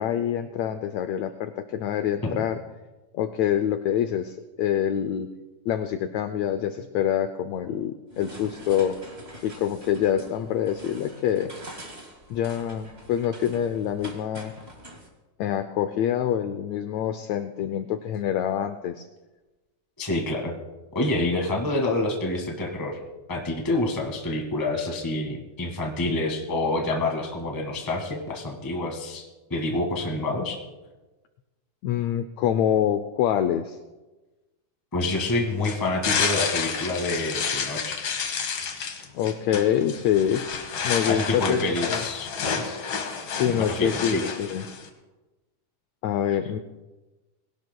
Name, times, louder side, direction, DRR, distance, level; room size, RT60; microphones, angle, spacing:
voice 1, 0.0-2.6 3.1-5.3 5.7-9.0 9.4-11.5 12.3-14.5 15.4-19.1 31.8-33.8 39.1-40.4 40.8-42.0 43.4-44.6 46.0-46.6, left 10 dB, 90° left, 9 dB, 1.5 m, -26 dB
sound 1, 8.1-15.1, right 1 dB, 25° right, 0.9 m, -44 dB
voice 2, 20.0-20.5 20.9-23.0 23.3-29.2 29.5-30.6 34.9-38.0 41.0-42.8 43.6-44.2, left 2 dB, 20° left, 1 dB, 0.6 m, -27 dB
sound 2, 35.0-44.9, left 6 dB, 65° left, 1.2 m, -30 dB
21.5 x 17.5 x 2.2 m, 1.2 s
omnidirectional pair, 3.7 m